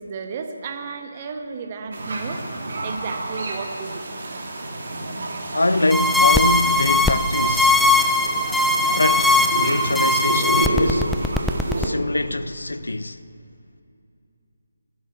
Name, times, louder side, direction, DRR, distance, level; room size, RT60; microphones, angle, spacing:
voice 1, 0.0-4.0 5.7-5.8, right 5 dB, 30° right, 1.4 m, -33 dB
sound 1, 1.9-11.9, right 2 dB, 50° right, 2.7 m, -29 dB
voice 2, 5.5-7.8 8.9-11.1 11.8-13.2, left 2 dB, 75° left, 0.8 m, -24 dB
sound 2, 5.9-11.9, left 2 dB, ahead, 0.4 m, -19 dB
12.0 x 11.0 x 9.2 m
figure-of-eight pair, 150°, 0 cm